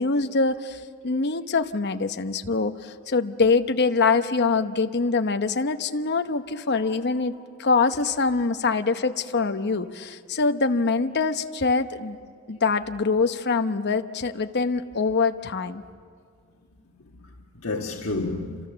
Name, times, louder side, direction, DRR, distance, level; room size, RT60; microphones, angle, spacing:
voice 1, 0.0-7.3 7.6-12.2 12.5-15.8, left 4 dB, 55° left, 0.9 m, -24 dB
voice 2, 6.4-7.0 7.3-7.4 16.8-18.7, left 2 dB, 70° left, 1.5 m, -33 dB
29.5 x 26.5 x 6.8 m
head